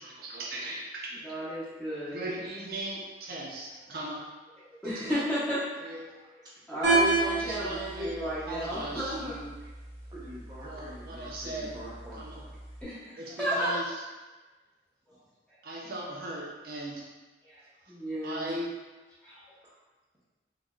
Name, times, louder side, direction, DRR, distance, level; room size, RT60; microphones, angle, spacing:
voice 1, 0.0-1.1 1.5-1.6 2.1-4.2 4.8-5.2 5.8-6.1 7.2-9.5 10.6-11.7 12.2-12.4 13.2-14.0 15.6-17.1 18.2-18.7, right 1 dB, 55° right, -3 dB, 0.5 m, -38 dB
voice 2, 1.2-2.2 4.8-6.0 6.7-9.3 12.8-13.7 15.5-15.6 17.4-18.5 19.2-19.4, equal, 5° left, -11 dB, 1.1 m, -33 dB
sound 1, 6.8-12.8, right 3 dB, 80° right, 1.3 m, -32 dB
voice 3, 10.1-12.5 15.1-15.3 15.8-15.9 19.6-19.7, right 1 dB, 25° right, -7 dB, 0.7 m, -46 dB
4.5 x 2.6 x 2.3 m, 1.2 s
head